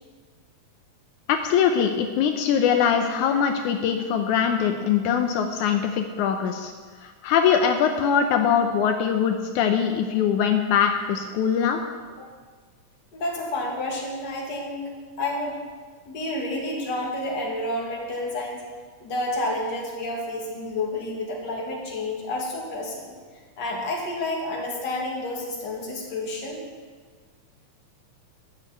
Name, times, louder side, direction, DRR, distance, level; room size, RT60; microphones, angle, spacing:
voice 1, 1.3-6.7 7.0-11.8, left 7 dB, 80° left, 6 dB, 2.1 m, -22 dB
voice 2, 13.1-14.9 15.2-15.6 16.1-18.6 19.0-23.1 23.6-26.6, left 1 dB, 35° left, -1 dB, 2.4 m, -30 dB
13.5 x 6.7 x 8.4 m, 1.5 s
omnidirectional pair, 3.5 m